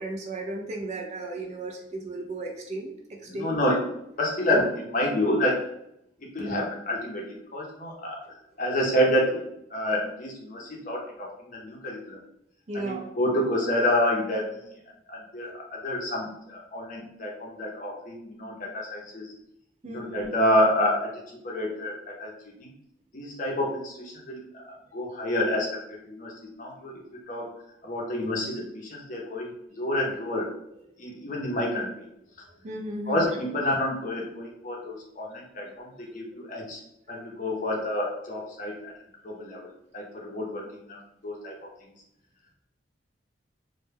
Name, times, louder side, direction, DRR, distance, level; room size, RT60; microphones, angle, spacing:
voice 1, 0.0-3.8 4.5-4.6 6.4-6.6 12.7-13.1 15.4-15.5 19.8-20.4 30.9-31.0 32.4-33.3 35.6-35.7 36.1-36.2 37.1-37.2, right 2 dB, 35° right, 2 dB, 0.3 m, -35 dB
voice 2, 3.3-3.8 4.2-5.6 6.3-7.2 7.5-8.2 8.6-9.4 9.7-12.2 12.7-14.7 15.1-19.3 19.8-21.1 21.4-22.3 22.6-22.7 23.1-26.3 26.6-27.0 27.3-27.5 27.8-30.5 31.0-31.9 33.1-36.8 37.1-38.9 39.2-41.5, left 1 dB, 40° left, -2 dB, 0.6 m, -28 dB
2.2 x 2.1 x 3.2 m, 0.77 s
head